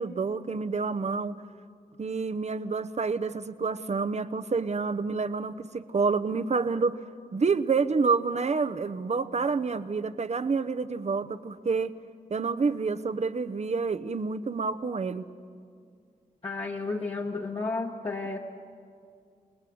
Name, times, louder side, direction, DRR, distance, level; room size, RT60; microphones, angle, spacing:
voice 1, 0.0-1.4 2.0-7.0 7.3-11.9 12.3-15.2, right 4 dB, 50° right, 11 dB, 0.9 m, -28 dB
voice 2, 16.4-18.4, left 3 dB, 35° left, -2 dB, 1.7 m, -32 dB
28.0 x 19.5 x 7.9 m, 2.3 s
cardioid pair, 75°, 15 cm